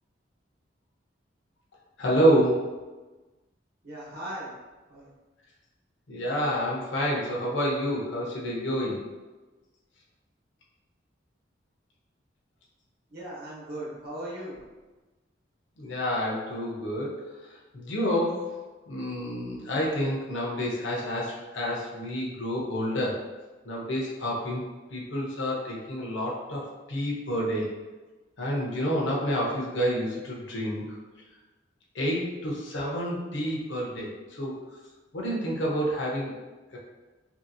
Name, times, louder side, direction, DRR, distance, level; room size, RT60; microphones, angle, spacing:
voice 1, 2.0-2.7 6.1-9.0 15.8-18.6 18.9-23.2 23.6-24.6 24.9-27.7 28.4-30.9 31.9-34.5 35.1-36.3 36.7-36.8, equal, 75° left, -4 dB, 0.7 m, -28 dB
voice 2, 3.8-4.5 4.9-5.1 13.1-14.6, right 1 dB, 55° right, -6 dB, 0.9 m, -38 dB
2.9 x 2.7 x 2.6 m, 1.2 s
head